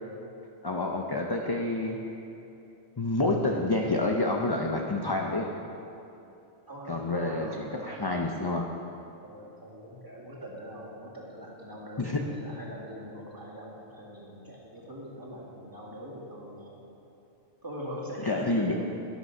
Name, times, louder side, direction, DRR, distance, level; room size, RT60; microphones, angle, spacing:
voice 1, 0.6-2.0 3.0-5.5 6.9-8.7 12.0-12.2 18.3-18.7, left 2 dB, 30° left, 1 dB, 0.5 m, -28 dB
voice 2, 6.7-7.9 9.2-16.8 17.6-18.7, equal, 15° right, -4 dB, 2.2 m, -42 dB
12.5 x 11.0 x 5.5 m, 2.8 s
omnidirectional pair, 1.3 m